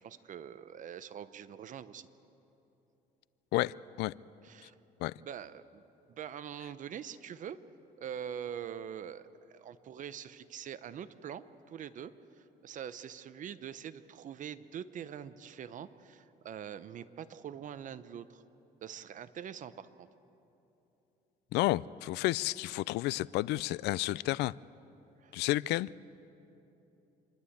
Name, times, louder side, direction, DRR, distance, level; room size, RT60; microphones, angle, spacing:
voice 1, 0.0-2.1 4.4-4.8 5.2-5.8 6.1-7.6 8.0-18.4 18.8-20.1 25.2-25.3, right 8 dB, 50° right, 0.8 m, -44 dB
voice 2, 3.5-4.1 5.0-5.1 21.5-24.5 25.3-25.9, left 18 dB, 85° left, 0.4 m, -31 dB
27.0 x 11.5 x 8.6 m
cardioid pair, 110°, 17 cm